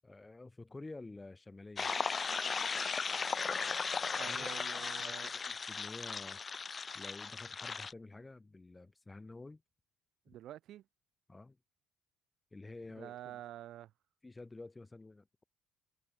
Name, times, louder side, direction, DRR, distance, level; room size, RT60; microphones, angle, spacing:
voice 1, 0.0-1.9 4.3-4.5 5.0-6.4 6.9-9.6 11.3-11.6 12.5-13.4 14.2-15.4, left 2 dB, 20° left, 7.8 m, -50 dB
sound 1, 1.8-7.9, left 5 dB, 35° left, 0.6 m, -37 dB
voice 2, 4.0-5.3 10.3-10.8 13.0-13.9, right 13 dB, 65° right, 4.1 m, -48 dB
hypercardioid pair, 60°, 0 cm